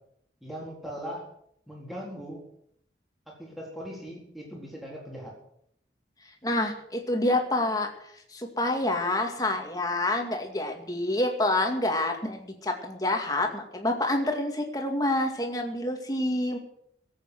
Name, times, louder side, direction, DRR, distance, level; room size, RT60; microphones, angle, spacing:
voice 1, 0.4-1.3 1.7-2.4 3.3-5.4, equal, ahead, -3 dB, 4.1 m, -39 dB
voice 2, 6.4-7.9 8.3-16.6, left 1 dB, 20° left, 3 dB, 2.3 m, -27 dB
17.5 x 8.6 x 7.8 m, 0.70 s
head